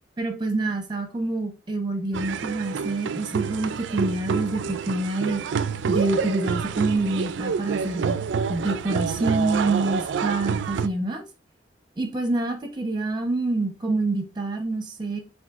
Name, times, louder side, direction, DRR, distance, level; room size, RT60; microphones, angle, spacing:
voice 1, 0.2-5.4 5.9-8.2 8.5-11.2 12.0-15.2, right 2 dB, 25° right, 6 dB, 0.9 m, -26 dB
sound 1, 2.1-10.9, right 6 dB, 75° right, 0.3 m, -28 dB
7.4 x 2.7 x 2.5 m, 0.30 s
head